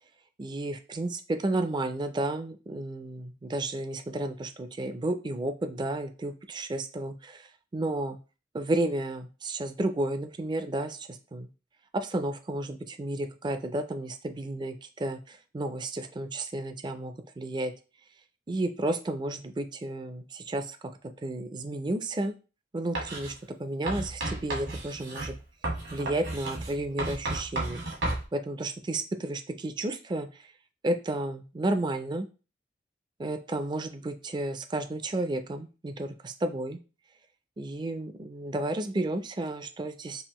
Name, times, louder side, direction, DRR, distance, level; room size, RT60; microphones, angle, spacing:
voice 1, 0.4-7.5 7.7-8.2 8.5-11.5 11.9-17.7 18.5-20.8 21.2-22.3 22.7-23.3 23.6-25.3 25.9-27.8 28.3-30.3 30.8-32.3 33.2-36.8 37.6-40.2, right 2 dB, 25° right, 8 dB, 0.4 m, -32 dB
Writing, 22.9-23.3 23.9-28.2, right 2 dB, 75° right, 1.5 m, -33 dB
5.4 x 2.4 x 3.0 m, 0.33 s
head